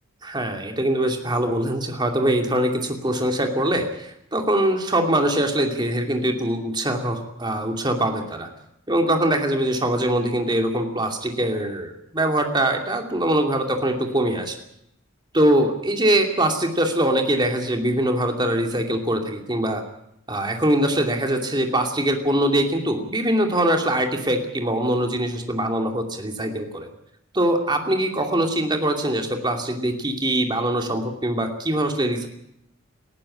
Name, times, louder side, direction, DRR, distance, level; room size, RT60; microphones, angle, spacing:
voice 1, 0.2-8.5 8.9-14.5 15.3-19.8 20.3-26.9 27.3-32.3, right 1 dB, 20° right, 3 dB, 2.6 m, -23 dB
19.0 x 14.5 x 9.9 m, 0.81 s
head